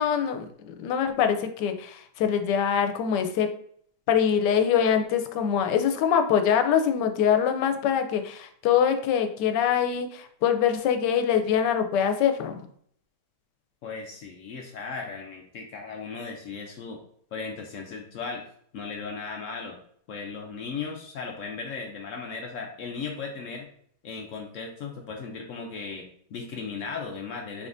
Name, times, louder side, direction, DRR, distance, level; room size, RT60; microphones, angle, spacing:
voice 1, 0.0-3.5 4.1-12.7, left 8 dB, 85° left, 7 dB, 1.2 m, -24 dB
voice 2, 13.8-17.0 17.3-18.4 18.7-19.8 20.1-23.7 24.0-27.7, left 5 dB, 70° left, 2 dB, 0.7 m, -36 dB
4.1 x 3.5 x 2.5 m, 0.64 s
omnidirectional pair, 1.8 m